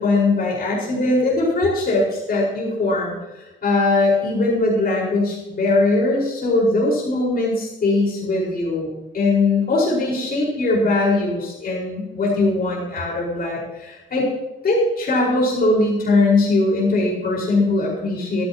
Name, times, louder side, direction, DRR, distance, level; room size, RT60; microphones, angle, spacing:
voice 1, 0.0-8.9 9.1-14.3 14.6-18.4, left 2 dB, 50° left, -4 dB, 5.2 m, -20 dB
25.0 x 9.6 x 3.0 m, 1.0 s
cardioid pair, 90°, 20 cm